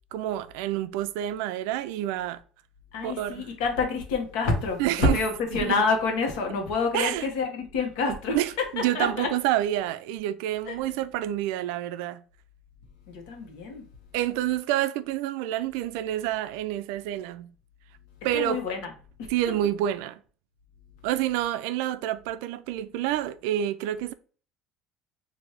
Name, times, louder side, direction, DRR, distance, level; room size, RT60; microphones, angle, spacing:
voice 1, 0.1-2.4 3.0-3.4 4.8-5.2 5.6-5.8 6.9-7.3 8.3-12.2 14.1-17.5 18.2-18.6 19.3-20.2 21.0-24.1, right 12 dB, 85° right, 0.3 m, -28 dB
voice 2, 2.9-8.4 8.9-9.3 10.7-10.8 13.1-13.8 18.3-18.9 19.2-19.6, left 4 dB, 80° left, 1.1 m, -27 dB
3.2 x 2.6 x 4.2 m
cardioid pair, 140°, 0 cm